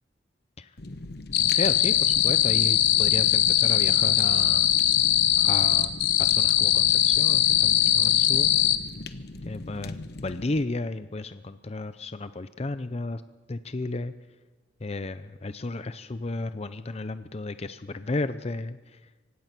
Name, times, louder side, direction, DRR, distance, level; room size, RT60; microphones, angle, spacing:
Fire, 0.8-10.6, left 2 dB, 60° left, 1.1 m, -40 dB
sound 1, 1.3-8.8, left 11 dB, 85° left, 1.3 m, -21 dB
voice 1, 1.5-4.7 5.4-8.5 9.5-13.2 13.5-14.1 14.8-18.8, left 2 dB, 35° left, 11 dB, 0.6 m, -33 dB
24.5 x 18.0 x 6.1 m, 1.3 s
head